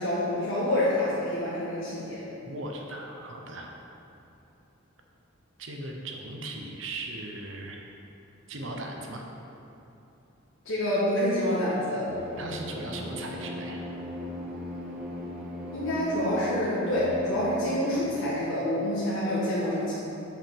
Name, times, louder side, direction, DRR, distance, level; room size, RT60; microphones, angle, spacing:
voice 1, 0.0-2.2 10.6-12.1 15.7-19.9, left 1 dB, 80° left, -9 dB, 1.5 m, -27 dB
voice 2, 2.4-3.7 5.6-7.9 8.5-9.3 12.4-13.8, right 2 dB, 70° right, 1 dB, 0.9 m, -38 dB
sound 1, 12.1-17.9, left 1 dB, 5° right, 1.2 m, -37 dB
6.2 x 4.9 x 6.8 m, 2.9 s
head